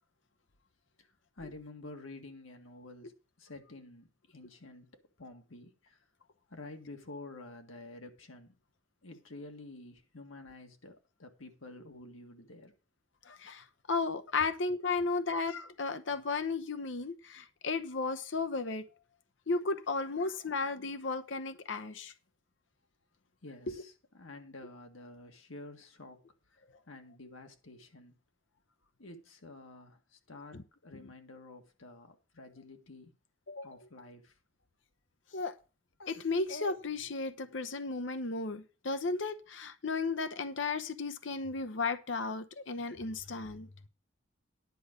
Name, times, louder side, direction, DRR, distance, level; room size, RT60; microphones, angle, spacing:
voice 1, 1.0-6.0 6.5-8.6 9.0-12.7 23.4-26.2 26.9-28.1 29.0-33.1 33.6-34.4, left 2 dB, 85° left, 1.8 m, -50 dB
voice 2, 13.2-18.8 19.5-22.1 30.5-30.6 33.5-33.7 35.3-35.6 36.0-43.7, left 3 dB, 65° left, 0.9 m, -34 dB
10.0 x 5.1 x 8.0 m
head